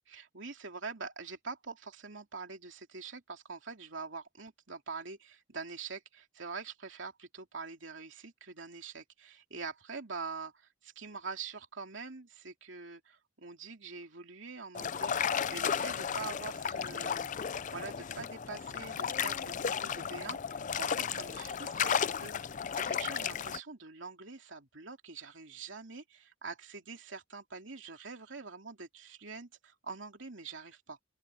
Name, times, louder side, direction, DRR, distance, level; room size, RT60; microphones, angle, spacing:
voice 1, 0.1-17.3 17.7-22.3 22.7-31.0, right 4 dB, 65° right, 3.1 m, -45 dB
sound 1, 14.8-23.6, left 7 dB, 40° left, 0.5 m, -34 dB
open air
head